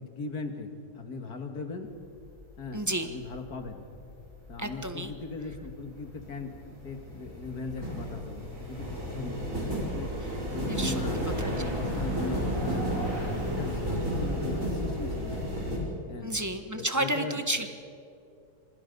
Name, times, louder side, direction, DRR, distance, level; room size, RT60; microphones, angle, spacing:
voice 1, 0.0-1.9 2.6-3.9 4.5-10.1 10.5-13.2 13.5-15.6 16.1-16.3 16.7-17.4, left 4 dB, 75° left, 5 dB, 2.4 m, -38 dB
sound 1, 1.8-2.3 2.7-15.8, equal, 55° right, 5.4 m, -33 dB
voice 2, 2.7-3.1 4.6-5.1 10.7-10.9 11.4-11.5 16.2-17.7, right 1 dB, 15° right, 7 dB, 1.0 m, -31 dB
26.0 x 22.5 x 5.4 m, 2.5 s
omnidirectional pair, 1.7 m